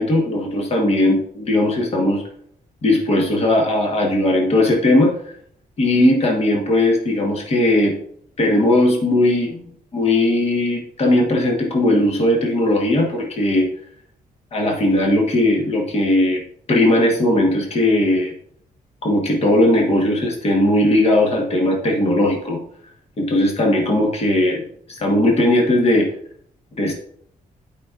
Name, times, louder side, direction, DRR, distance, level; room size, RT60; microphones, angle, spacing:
voice 1, 0.0-2.2 2.8-5.3 5.8-8.0 8.4-9.6 9.9-13.7 14.5-16.4 16.7-18.3 19.0-22.6 23.2-24.7 25.0-26.1 26.8-26.9, left 1 dB, 40° left, 0 dB, 1.4 m, -18 dB
12.0 x 5.1 x 2.5 m, 0.64 s
wide cardioid pair, 145°, 15 cm